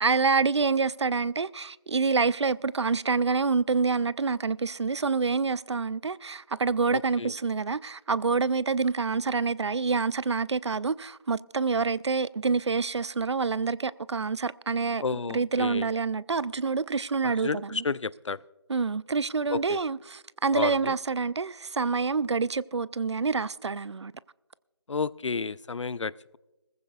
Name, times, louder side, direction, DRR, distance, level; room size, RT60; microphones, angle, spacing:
voice 1, 0.0-15.0 15.3-17.8 18.7-24.1, right 4 dB, 70° right, 0.4 m, -27 dB
voice 2, 6.9-7.3 15.0-15.9 17.2-18.4 19.5-19.8 20.5-20.9 24.9-26.4, left 4 dB, 80° left, 0.5 m, -32 dB
20.0 x 15.0 x 2.3 m
figure-of-eight pair, 170°, 15 cm